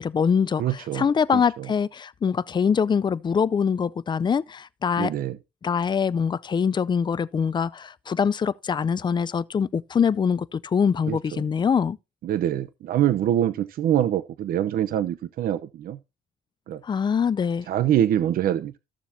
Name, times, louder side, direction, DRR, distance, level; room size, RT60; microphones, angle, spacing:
voice 1, 0.0-5.1 5.6-12.0 16.8-17.7, left 6 dB, 25° left, 0.5 m, -24 dB
voice 2, 0.6-1.0 1.3-1.7 5.0-5.4 11.1-11.4 12.2-16.0 16.7-16.8 17.7-18.7, right 11 dB, 60° right, 0.8 m, -24 dB
14.0 x 7.1 x 2.7 m
cardioid pair, 110°, 17 cm